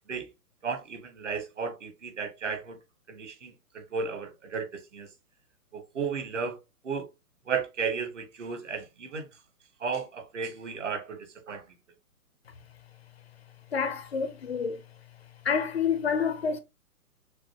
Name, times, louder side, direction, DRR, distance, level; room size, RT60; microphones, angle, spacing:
voice 1, 0.6-2.8 3.1-5.1 5.7-6.6 6.8-7.1 7.5-9.3 9.8-11.2 11.5-11.6, right 5 dB, 50° right, 1.3 m, -34 dB
voice 2, 13.7-14.8 15.4-16.6, left 6 dB, 40° left, 0.7 m, -28 dB
6.3 x 2.7 x 2.9 m
figure-of-eight pair, 130°, 46 cm